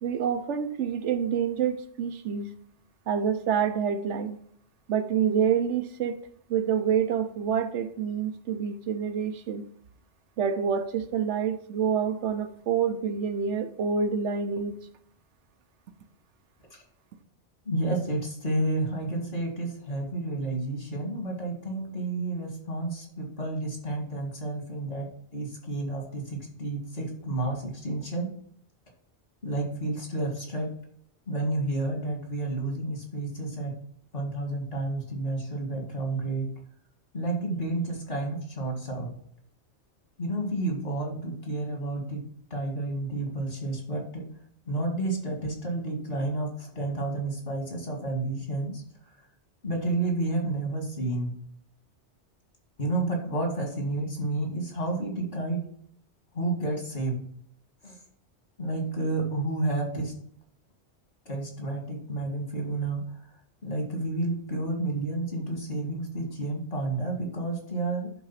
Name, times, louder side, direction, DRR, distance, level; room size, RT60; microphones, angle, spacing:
voice 1, 0.0-2.5 3.1-4.4 4.9-6.2 6.5-9.7 10.4-14.8, right 7 dB, 90° right, 9 dB, 1.1 m, -27 dB
voice 2, 17.7-28.3 29.4-30.7 31.3-33.7 34.1-36.5 37.1-39.1 40.2-42.2 42.5-44.2 44.7-48.8 49.6-51.3 52.8-55.6 56.3-57.2 57.8-58.0 58.6-60.1 61.3-63.0 63.6-68.1, right 2 dB, 55° left, 1 dB, 2.6 m, -30 dB
11.0 x 3.9 x 5.7 m, 0.64 s
omnidirectional pair, 1.2 m